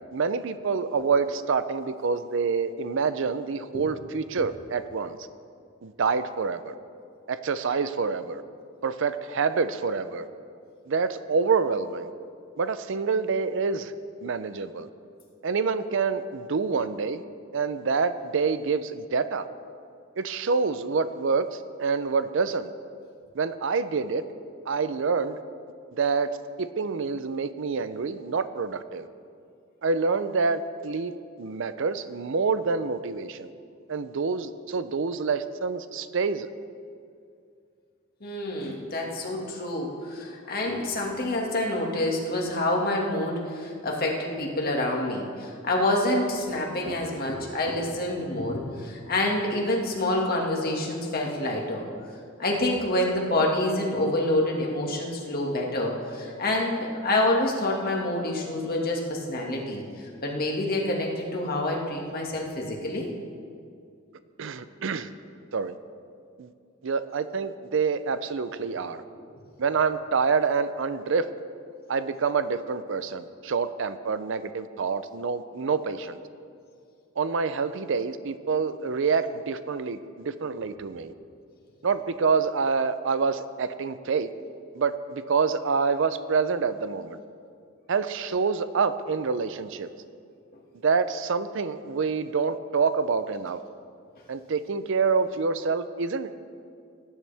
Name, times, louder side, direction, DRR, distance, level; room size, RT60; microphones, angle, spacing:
voice 1, 0.1-5.2 5.8-6.7 7.3-8.4 8.8-10.3 10.9-12.1 12.6-13.9 14.2-14.9 15.4-17.2 17.5-19.5 20.2-22.7 23.3-24.2 24.7-25.4 26.0-26.3 26.6-29.1 29.8-33.5 33.9-36.5 64.4-65.1 65.5-65.8 66.4-66.5 66.8-69.0 69.6-71.3 71.9-76.2 77.2-81.1 81.8-84.3 84.7-87.2 87.9-89.9 90.8-93.6 94.3-96.4, right 5 dB, 65° right, 12 dB, 0.5 m, -27 dB
voice 2, 38.2-51.8 52.4-63.1 68.6-68.8 69.2-69.3 81.2-81.3, left 1 dB, 50° left, -1 dB, 1.9 m, -27 dB
18.5 x 10.5 x 3.4 m, 2.3 s
head